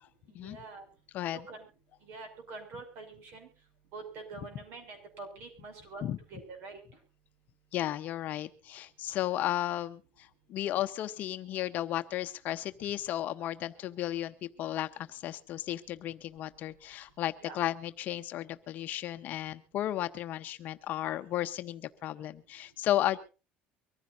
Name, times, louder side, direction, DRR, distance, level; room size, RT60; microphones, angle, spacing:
voice 1, 0.3-0.8 1.3-1.7 2.0-3.5 3.9-6.0 6.3-6.8 17.4-17.6 23.1-23.2, right 3 dB, 55° right, 6 dB, 6.0 m, -45 dB
voice 2, 1.1-1.4 6.0-6.2 7.7-23.2, left 13 dB, 45° left, 10 dB, 0.9 m, -34 dB
24.0 x 15.0 x 2.6 m, 0.33 s
cardioid pair, 165°, 4 cm